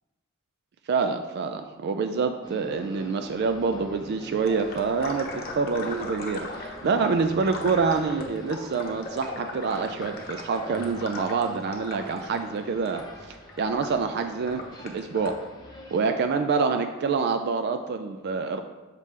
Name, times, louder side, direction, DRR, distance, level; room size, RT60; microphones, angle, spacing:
voice 1, 0.9-15.4 15.9-18.6, right 4 dB, 50° right, 7 dB, 0.3 m, -27 dB
sound 1, 2.4-16.1, left 1 dB, 20° left, 0.7 m, -46 dB
sound 2, 4.5-15.3, left 2 dB, 45° left, 0.9 m, -39 dB
6.6 x 5.0 x 3.2 m, 1.2 s
head